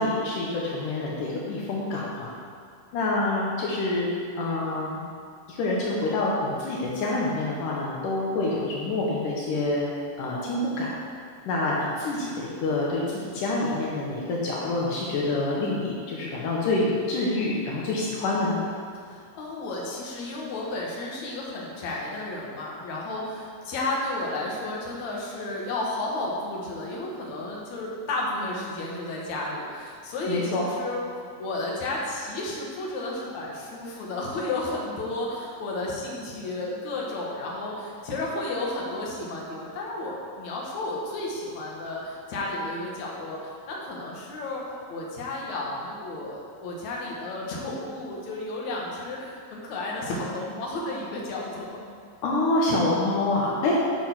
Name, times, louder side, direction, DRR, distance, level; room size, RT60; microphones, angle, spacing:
voice 1, 0.0-2.3 2.9-4.1 4.4-5.0 5.5-9.9 10.2-10.9 11.5-18.6 30.3-30.6 52.2-53.8, left 2 dB, 85° left, -4 dB, 1.8 m, -27 dB
voice 2, 19.0-31.0 31.4-44.6 44.9-51.8, left 2 dB, 65° left, -3 dB, 1.9 m, -32 dB
7.5 x 6.9 x 6.0 m, 2.2 s
omnidirectional pair, 5.3 m